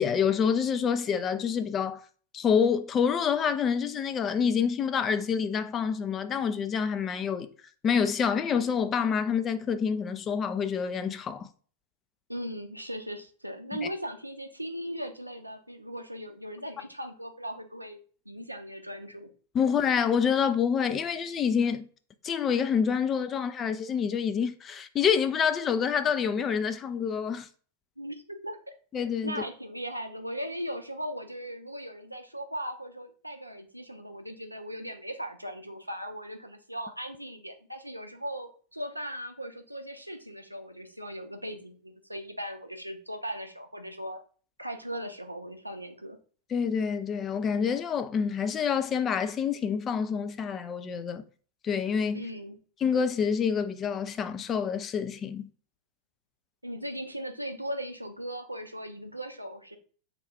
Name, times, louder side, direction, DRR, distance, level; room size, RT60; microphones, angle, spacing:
voice 1, 0.0-2.0 2.3-7.5 7.8-11.5 19.5-21.9 22.2-27.5 28.9-29.4 46.5-51.2 51.6-52.2 52.8-55.5, left 7 dB, 25° left, 0.4 m, -27 dB
voice 2, 12.3-18.0 18.3-19.3 28.0-28.2 28.4-28.6 29.2-44.2 44.6-46.2 52.1-52.6 56.6-59.8, equal, 90° right, 0.5 m, -38 dB
3.6 x 2.3 x 3.4 m
figure-of-eight pair, 90°, 0 cm